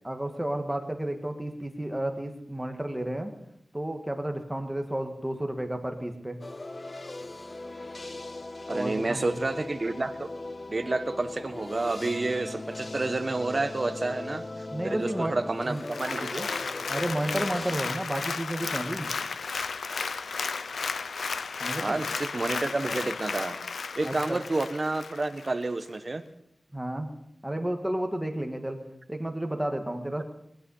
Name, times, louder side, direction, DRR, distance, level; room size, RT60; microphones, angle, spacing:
voice 1, 0.0-3.3 3.7-6.4 8.7-9.3 14.7-15.4 15.7-15.8 16.9-19.1 21.6-22.0 24.0-24.4 26.7-27.1 27.4-28.8 29.1-30.2, right 1 dB, 10° right, 4 dB, 1.7 m, -32 dB
sound 1, 6.4-17.8, left 2 dB, 35° left, 0.6 m, -39 dB
voice 2, 8.7-10.3 10.7-16.5 21.8-23.6 24.0-26.2, right 2 dB, 35° right, 9 dB, 1.2 m, -30 dB
Applause, 15.8-25.5 26.0-26.1, left 5 dB, 85° left, 0.6 m, -34 dB
20.0 x 11.5 x 5.6 m, 0.78 s
wide cardioid pair, 120°, 0 cm